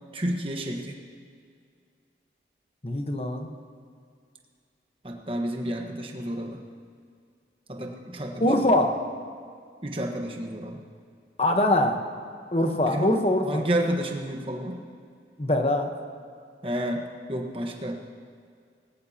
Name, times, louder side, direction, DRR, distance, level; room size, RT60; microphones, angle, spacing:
voice 1, 0.1-1.0 5.0-6.6 7.7-8.8 9.8-10.8 12.9-13.1 13.4-14.8 16.6-17.0 17.3-18.0, right 1 dB, 30° right, 1 dB, 1.4 m, -30 dB
voice 2, 2.8-3.5 8.4-9.0 11.4-12.0 12.5-13.6 15.4-15.9, left 1 dB, 35° left, 4 dB, 1.2 m, -23 dB
19.5 x 18.0 x 3.0 m, 2.2 s
head